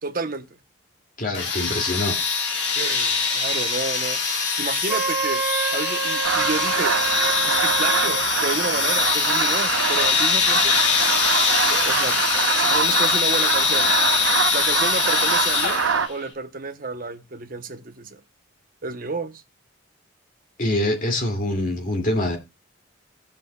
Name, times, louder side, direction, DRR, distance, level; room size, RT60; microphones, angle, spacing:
voice 1, 0.0-0.5 2.7-4.2 4.6-5.4 5.7-6.9 7.5-10.8 11.7-12.2 12.6-13.9 14.5-15.8 16.1-18.2 18.8-19.4, right 3 dB, 45° right, 0.9 m, -30 dB
voice 2, 1.2-2.2 20.6-22.4, left 1 dB, 40° left, 2.5 m, -24 dB
sound 1, 1.3-16.1, left 5 dB, 60° left, 2.0 m, -23 dB
Wind instrument woodwind instrument, 4.9-8.2, right 5 dB, 5° right, 2.0 m, -27 dB
sound 2, 6.2-16.1, right 6 dB, 80° right, 0.9 m, -25 dB
18.0 x 7.4 x 2.3 m
head